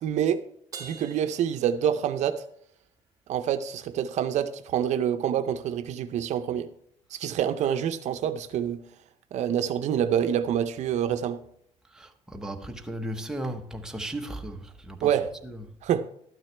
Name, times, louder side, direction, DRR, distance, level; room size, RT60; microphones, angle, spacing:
voice 1, 0.0-0.4 0.8-2.4 3.3-6.7 7.1-8.8 9.3-11.4 15.0-15.3 15.8-16.1, right 9 dB, 65° right, 0.6 m, -26 dB
Crash cymbal, 0.7-2.4, right 4 dB, 25° right, 1.6 m, -45 dB
voice 2, 11.9-15.2 15.4-15.8, right 1 dB, 5° right, 0.8 m, -36 dB
12.0 x 8.9 x 3.3 m
cardioid pair, 125°, 13 cm